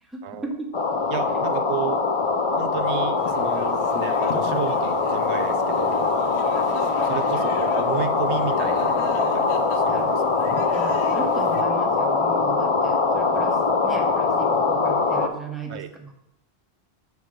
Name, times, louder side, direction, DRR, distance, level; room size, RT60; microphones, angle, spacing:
voice 1, 0.0-0.7 1.3-1.4 9.9-10.1 10.7-16.1, right 3 dB, ahead, 1 dB, 0.9 m, -36 dB
sound 1, 0.7-15.3, left 4 dB, 40° left, 0.5 m, -22 dB
voice 2, 1.1-2.0 2.6-6.1 7.0-10.2 15.7-15.9, right 9 dB, 85° right, 9 dB, 0.9 m, -32 dB
sound 2, 3.2-11.6, left 5 dB, 75° left, 1.0 m, -36 dB
5.7 x 4.5 x 6.5 m, 0.81 s
omnidirectional pair, 1.1 m